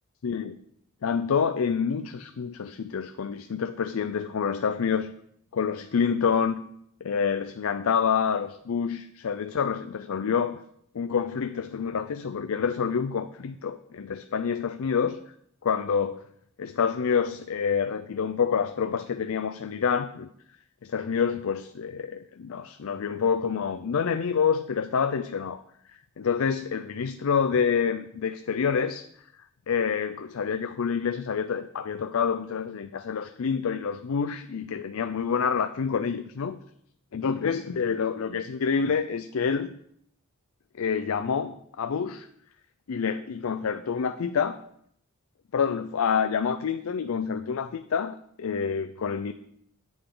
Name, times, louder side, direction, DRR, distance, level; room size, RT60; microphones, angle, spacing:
voice 1, 0.2-0.6 1.0-5.1 5.5-6.5 7.0-10.6 10.9-15.2 15.6-16.2 16.6-20.3 20.8-25.6 25.9-29.1 29.7-36.6 37.1-39.7 40.8-42.3 42.9-44.6 45.5-49.3, left 6 dB, 70° left, 10 dB, 0.4 m, -27 dB
10.0 x 8.0 x 3.8 m, 0.70 s
head